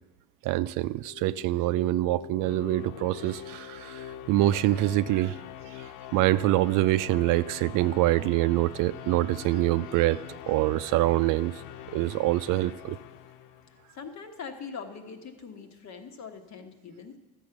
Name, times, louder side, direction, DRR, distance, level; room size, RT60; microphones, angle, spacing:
voice 1, 0.4-5.4 5.7-5.9 6.1-10.2 10.5-11.6 11.9-13.0, right 16 dB, 75° right, 15 dB, 0.5 m, -25 dB
sound 1, 0.9-14.0, left 11 dB, 80° left, 0.5 m, -43 dB
voice 2, 13.9-17.2, left 5 dB, 60° left, 5 dB, 1.3 m, -42 dB
12.5 x 7.4 x 5.9 m, 1.1 s
supercardioid pair, 75°, 31 cm